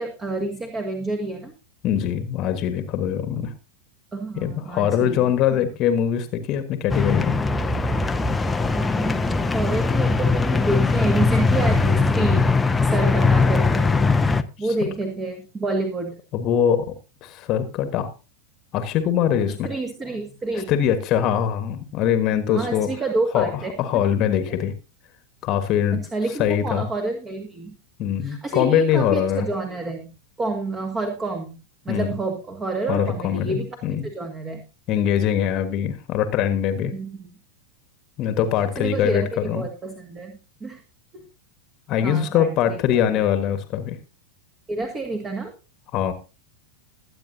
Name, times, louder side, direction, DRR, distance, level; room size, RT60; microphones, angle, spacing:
voice 1, 0.0-1.5 4.1-5.6 8.7-13.9 14.4-16.2 19.6-20.7 22.5-23.7 24.4-24.6 25.9-27.7 28.2-30.1 30.4-31.6 31.8-33.8 34.0-34.6 36.9-37.3 38.8-40.3 40.6-40.8 41.1-41.2 42.0-43.2 44.7-45.5, right 2 dB, 20° right, 5 dB, 1.9 m, -29 dB
voice 2, 1.8-3.5 4.4-7.4 16.3-16.9 17.2-18.1 18.7-19.7 20.7-22.9 23.3-23.5 23.8-24.7 25.4-26.1 26.4-26.9 28.0-29.5 31.9-32.1 32.9-34.0 34.9-36.9 38.2-39.7 41.9-44.0 45.9-46.1, left 9 dB, 35° left, 10 dB, 1.4 m, -22 dB
sound 1, 6.9-14.4, left 4 dB, 10° left, 0.8 m, -20 dB
21.5 x 8.8 x 2.7 m, 0.31 s
figure-of-eight pair, 90°, 0 cm